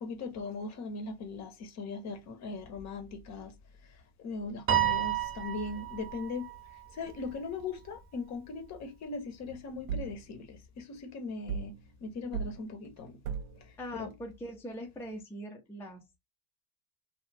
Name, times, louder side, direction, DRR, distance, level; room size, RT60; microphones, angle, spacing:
voice 1, 0.0-3.5 4.2-6.5 7.0-11.7 12.0-13.2 13.9-14.1, left 4 dB, 40° left, 0.8 m, -39 dB
Piano, 4.7-7.2, right 11 dB, 30° right, 0.8 m, -31 dB
sound 1, 9.9-10.2 11.5-11.8 12.3-12.6 13.2-13.6, right 7 dB, 75° right, 0.5 m, -35 dB
voice 2, 13.8-16.2, equal, 5° left, 0.5 m, -42 dB
2.3 x 2.1 x 3.2 m
hypercardioid pair, 85°, 43 cm